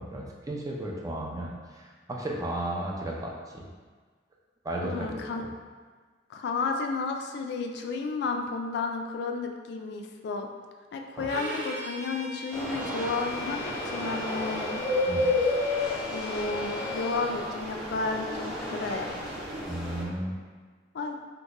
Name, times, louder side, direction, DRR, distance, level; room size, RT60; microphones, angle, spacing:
voice 1, 0.0-3.6 4.6-5.5 11.2-11.3 15.1-15.3 19.7-20.4, right 1 dB, 20° right, -2 dB, 0.4 m, -34 dB
voice 2, 4.8-5.4 6.3-10.5 10.9-14.8 15.4-15.5 16.1-19.1 20.9-21.2, left 4 dB, 65° left, 4 dB, 0.3 m, -32 dB
Bowed string instrument, 11.2-17.2, left 3 dB, 70° right, 0.7 m, -40 dB
sound 1, 12.5-20.0, left 1 dB, ahead, 0.8 m, -31 dB
2.9 x 2.2 x 3.6 m, 1.5 s
head